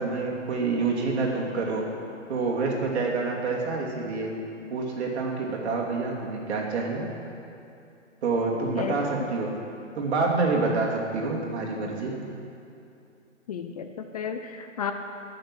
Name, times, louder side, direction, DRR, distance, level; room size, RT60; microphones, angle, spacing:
voice 1, 0.0-1.9 2.3-4.3 4.7-7.0 8.2-9.5 9.9-12.2, right 3 dB, 55° right, -1 dB, 2.9 m, -27 dB
voice 2, 8.8-9.3 13.5-14.9, left 7 dB, 30° left, 7 dB, 0.5 m, -33 dB
19.0 x 6.7 x 6.2 m, 2.6 s
hypercardioid pair, 135°, 39 cm